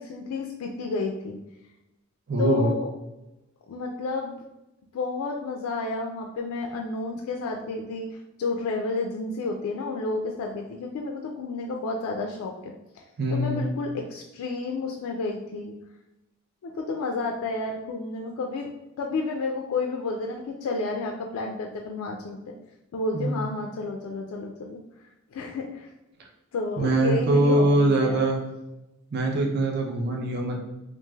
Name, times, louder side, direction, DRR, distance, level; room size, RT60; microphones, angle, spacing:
voice 1, 0.0-1.4 2.4-2.9 3.7-4.3 4.9-13.0 13.3-15.7 16.6-18.7 19.0-22.6 22.9-24.8 25.3-25.9 26.5-28.2, left 3 dB, 90° left, 2 dB, 0.3 m, -31 dB
voice 2, 2.3-2.7 13.2-13.7 23.1-23.4 26.8-28.4 29.1-30.6, right 2 dB, 50° right, 0 dB, 0.5 m, -23 dB
3.1 x 2.4 x 2.3 m, 0.95 s
head